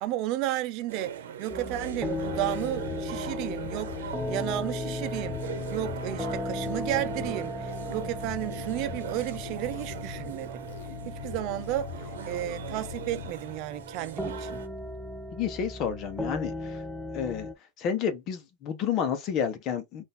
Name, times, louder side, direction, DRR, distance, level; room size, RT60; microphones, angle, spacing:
voice 1, 0.0-10.7 11.0-14.6, right 14 dB, 55° right, 0.6 m, -33 dB
sound 1, 0.9-14.7, right 9 dB, 85° right, 0.8 m, -41 dB
sound 2, 1.5-17.5, left 1 dB, ahead, 0.6 m, -37 dB
sound 3, 1.7-13.9, left 7 dB, 80° left, 1.0 m, -42 dB
voice 2, 15.3-16.5 17.1-17.5 17.8-20.0, left 8 dB, 45° left, 0.9 m, -30 dB
3.9 x 2.6 x 3.9 m
supercardioid pair, 125°, 0 cm